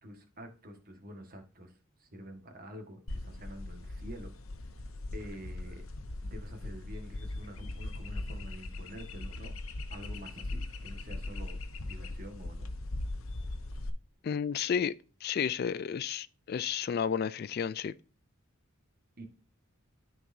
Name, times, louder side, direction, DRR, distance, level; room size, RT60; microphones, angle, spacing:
voice 1, 0.0-4.3 5.1-5.9 6.2-9.5 9.9-12.7 19.2-19.3, equal, 40° right, 1.6 m, -47 dB
sound 1, 3.1-13.9, left 2 dB, 70° left, 0.9 m, -39 dB
voice 2, 14.2-14.9 15.2-17.9, left 7 dB, 45° left, 0.3 m, -32 dB
13.5 x 4.6 x 2.7 m
head